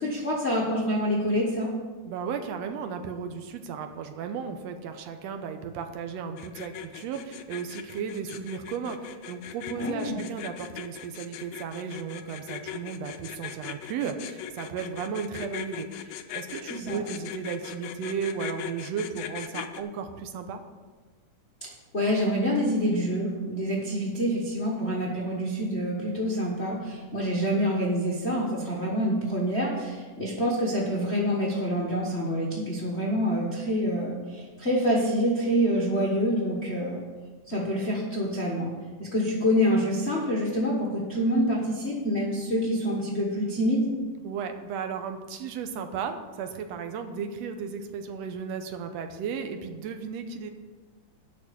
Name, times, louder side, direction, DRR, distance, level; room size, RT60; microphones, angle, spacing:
voice 1, 0.0-1.7 9.7-10.2 16.7-17.0 21.9-37.0 37.5-38.7 39.0-43.9, equal, 50° left, -4 dB, 0.7 m, -26 dB
voice 2, 2.1-20.6 44.2-50.5, right 6 dB, 70° right, 6 dB, 1.8 m, -35 dB
sound 1, 6.4-19.8, left 10 dB, 80° left, 1.5 m, -39 dB
8.7 x 6.0 x 8.2 m, 1.4 s
omnidirectional pair, 3.6 m